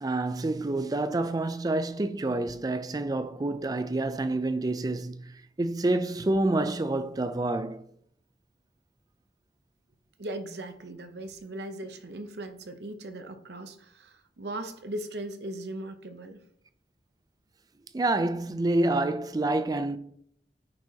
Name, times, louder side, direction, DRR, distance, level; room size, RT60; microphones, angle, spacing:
voice 1, 0.0-7.8 17.9-20.0, right 2 dB, 20° right, 0.4 m, -28 dB
voice 2, 10.2-16.4, right 1 dB, 65° right, 0.8 m, -38 dB
9.3 x 4.8 x 2.8 m
head